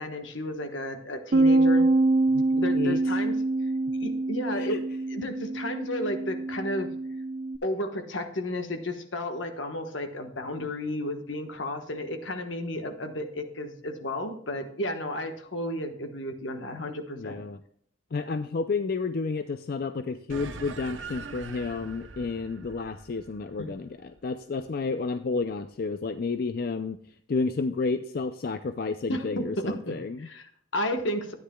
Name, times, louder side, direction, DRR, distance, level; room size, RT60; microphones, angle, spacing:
voice 1, 0.0-1.9 2.5-3.4 4.0-4.8 5.1-6.9 7.6-17.4 23.6-23.7 29.1-31.3, left 1 dB, 75° left, 6 dB, 1.3 m, -33 dB
Bass guitar, 1.3-7.6, right 2 dB, 55° right, 0.6 m, -25 dB
voice 2, 2.3-3.0 4.5-4.8 17.2-17.6 18.1-27.0 27.3-30.3, left 4 dB, 50° left, 9 dB, 0.4 m, -31 dB
sound 1, 20.3-25.1, right 4 dB, 80° right, 0.8 m, -43 dB
13.0 x 9.6 x 2.3 m, 0.66 s
head